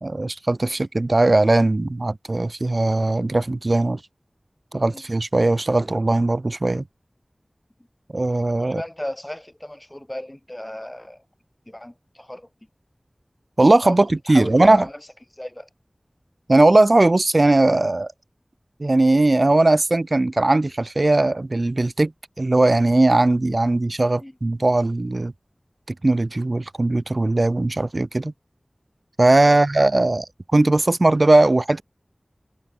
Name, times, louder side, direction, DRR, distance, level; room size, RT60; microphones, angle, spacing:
voice 1, 0.0-4.0 4.7-6.8 8.1-8.8 13.6-14.8 16.5-18.1 18.8-22.1 22.4-25.3 26.0-28.3 29.2-31.8, right 2 dB, 55° right, 1.1 m, -19 dB
voice 2, 8.6-11.2 11.7-12.5 13.8-14.0 14.2-15.1 15.3-15.7 24.2-24.4 29.4-29.6, left 1 dB, 20° left, 2.1 m, -35 dB
wide cardioid pair, 40°, 0 cm